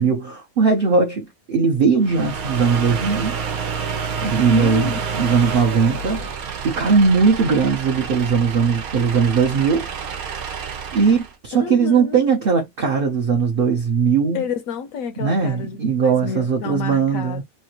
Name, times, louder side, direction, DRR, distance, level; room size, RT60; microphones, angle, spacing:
voice 1, 0.0-3.4 4.2-6.2 6.6-9.9 10.9-14.4 15.2-17.4, right 5 dB, 55° right, 0.7 m, -19 dB
sound 1, 2.0-11.3, right 6 dB, 90° right, 1.2 m, -28 dB
voice 2, 4.5-5.0 11.5-12.2 14.3-17.4, left 6 dB, 75° left, 1.1 m, -29 dB
3.2 x 2.5 x 2.8 m
omnidirectional pair, 1.5 m